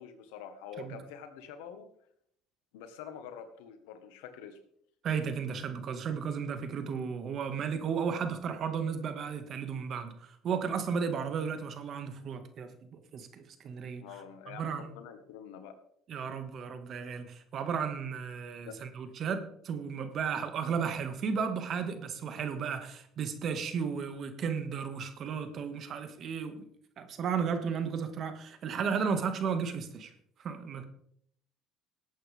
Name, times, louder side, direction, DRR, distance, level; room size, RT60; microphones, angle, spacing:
voice 1, 0.0-1.9 2.7-4.6 14.0-15.8 18.6-18.8, left 7 dB, 85° left, 8 dB, 1.6 m, -46 dB
voice 2, 5.0-14.0 14.5-14.9 16.1-26.6 27.0-30.1 30.4-30.8, right 6 dB, 50° right, 8 dB, 1.8 m, -34 dB
18.0 x 8.8 x 3.6 m, 0.68 s
supercardioid pair, 90°, 0 cm